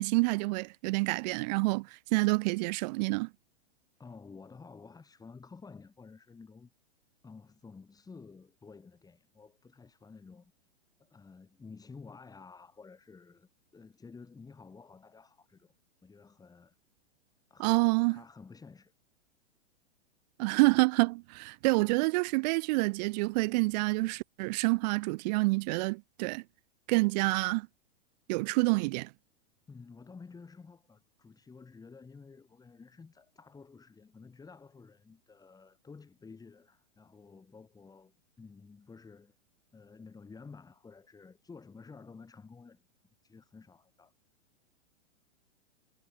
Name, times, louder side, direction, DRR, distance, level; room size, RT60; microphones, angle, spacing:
voice 1, 0.0-3.3 17.6-18.2 20.4-26.4 26.9-27.7 28.3-29.1, right 26 dB, 35° right, 0.6 m, -28 dB
voice 2, 4.0-6.7 7.2-10.5 11.0-15.7 16.0-16.8 17.5-18.9 29.7-39.4 39.7-42.8 43.2-44.1, left 4 dB, 10° left, 3.5 m, -52 dB
hypercardioid pair, 130°, 36 cm